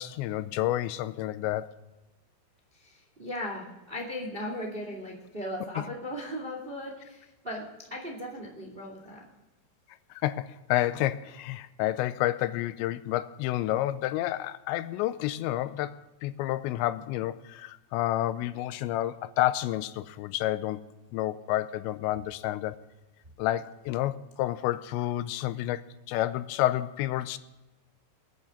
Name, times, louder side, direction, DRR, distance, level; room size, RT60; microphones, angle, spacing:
voice 1, 0.0-1.7 5.8-5.9 10.2-20.8 21.1-22.8 23.4-25.8 26.1-27.4, left 14 dB, 90° left, 2.9 m, -30 dB
voice 2, 2.7-7.6 7.9-9.2, equal, 20° right, 1.4 m, -37 dB
27.5 x 9.7 x 3.8 m
omnidirectional pair, 5.1 m